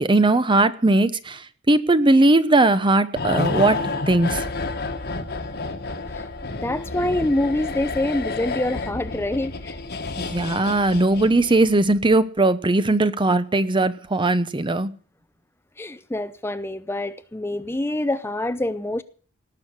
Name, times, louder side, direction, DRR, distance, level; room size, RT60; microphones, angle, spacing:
voice 1, 0.0-4.4 10.2-14.9, right 2 dB, 25° right, 13 dB, 0.8 m, -19 dB
sound 1, 3.2-11.7 12.0-12.1, left 3 dB, 55° left, 1.5 m, -30 dB
voice 2, 6.6-9.8 15.8-19.0, left 1 dB, 10° left, 12 dB, 0.7 m, -25 dB
18.5 x 6.5 x 9.8 m, 0.43 s
head